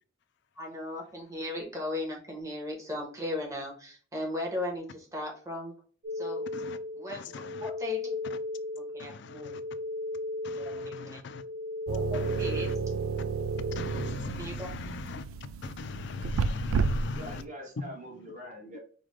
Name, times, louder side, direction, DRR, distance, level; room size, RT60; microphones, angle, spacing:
voice 1, 0.6-5.7 6.1-6.4 6.9-8.2 8.7-9.6 10.6-11.2 11.9-12.7 14.4-14.7, left 1 dB, 15° right, 1.2 m, -37 dB
sound 1, 6.0-13.8, left 2 dB, 65° right, 1.1 m, -37 dB
voice 2, 10.4-11.4 12.1-12.6 13.8-15.2 15.6-17.4, left 4 dB, 55° left, 0.4 m, -39 dB
sound 2, 11.9-17.4, right 5 dB, 85° right, 0.3 m, -32 dB
voice 3, 17.1-18.8, equal, 35° right, 1.5 m, -44 dB
4.8 x 2.3 x 3.6 m
head